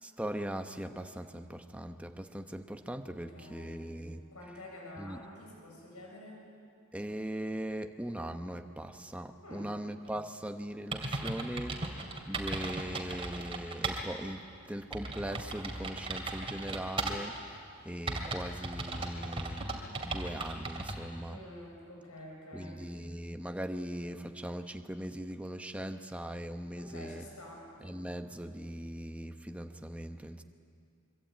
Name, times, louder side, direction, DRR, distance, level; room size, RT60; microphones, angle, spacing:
voice 1, 0.0-4.3 5.0-5.2 6.9-19.7 20.0-21.4 22.5-27.2 27.8-30.4, right 1 dB, 5° right, 6 dB, 1.0 m, -40 dB
voice 2, 3.1-3.9 4.3-6.4 9.4-9.7 21.3-22.8 26.8-27.7, left 1 dB, 90° left, -1 dB, 7.0 m, -48 dB
sound 1, 10.5-10.6 10.9-14.0 14.4-14.5 14.9-17.4 18.1-21.0, right 2 dB, 25° right, 2.6 m, -37 dB
25.5 x 23.5 x 8.9 m, 2.4 s
head